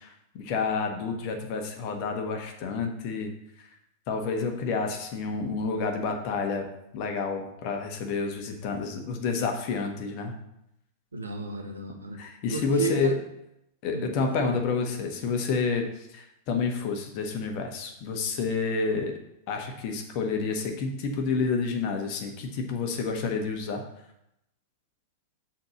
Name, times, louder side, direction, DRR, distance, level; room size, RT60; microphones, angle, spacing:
voice 1, 0.0-3.3 4.1-6.7 6.9-10.3 12.2-13.2 13.8-19.1 19.5-23.8, left 4 dB, 45° left, 4 dB, 1.3 m, -29 dB
voice 2, 11.1-12.2 12.5-13.1 13.9-14.5, right 3 dB, 75° right, 4 dB, 1.1 m, -33 dB
6.5 x 4.4 x 6.3 m, 0.82 s
figure-of-eight pair, 90°, 0 cm